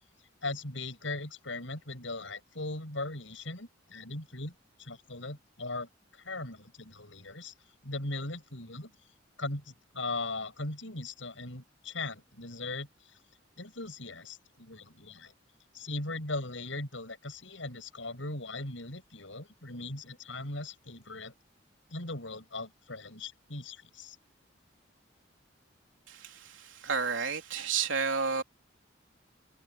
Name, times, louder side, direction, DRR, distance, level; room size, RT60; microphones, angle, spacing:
voice 1, 0.4-4.5 4.8-7.5 7.8-8.9 9.4-13.2 13.6-15.3 15.7-21.3 21.9-24.2, left 2 dB, 80° left, 7.6 m, -39 dB
voice 2, 26.8-28.4, right 5 dB, 80° right, 3.7 m, -30 dB
open air
head